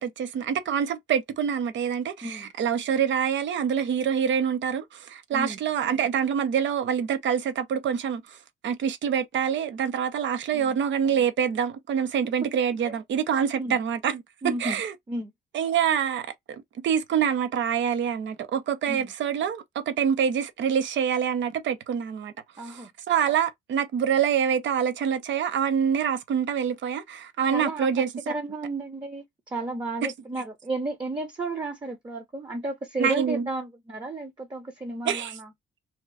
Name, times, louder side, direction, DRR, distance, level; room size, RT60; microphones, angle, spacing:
voice 1, 0.0-8.4 8.6-14.9 15.5-22.3 22.6-28.3 30.0-30.1 33.0-33.5 35.0-35.4, right 8 dB, 70° right, 0.8 m, -26 dB
voice 2, 2.2-2.5 5.3-5.6 10.5-10.8 12.4-12.6 12.8-12.9 13.6-13.8 14.4-14.8 15.1-15.3 18.9-19.1 22.6-22.9 27.5-27.9 28.3-35.5, right 2 dB, 20° right, 0.8 m, -33 dB
2.9 x 2.4 x 3.3 m
cardioid pair, 90°, 20 cm